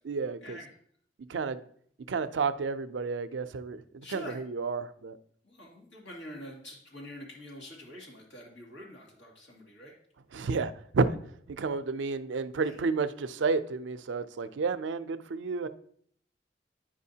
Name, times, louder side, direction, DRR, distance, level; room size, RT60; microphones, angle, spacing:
voice 1, 0.0-0.6 1.3-1.6 2.1-3.8 4.1-5.2 10.3-11.1 11.5-15.7, right 4 dB, 80° right, 12 dB, 0.4 m, -31 dB
voice 2, 4.0-4.4 5.4-9.9 12.6-12.7, left 1 dB, 85° left, -2 dB, 2.2 m, -46 dB
9.6 x 5.0 x 2.8 m, 0.63 s
head